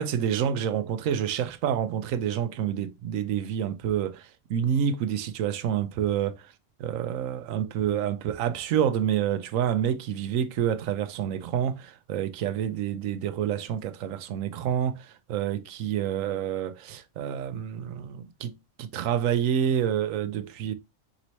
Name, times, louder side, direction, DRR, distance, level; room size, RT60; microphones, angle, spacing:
voice 1, 0.0-6.5 6.8-20.7, right 9 dB, 85° right, 1.0 m, -28 dB
5.2 x 3.1 x 2.7 m
omnidirectional pair, 1.3 m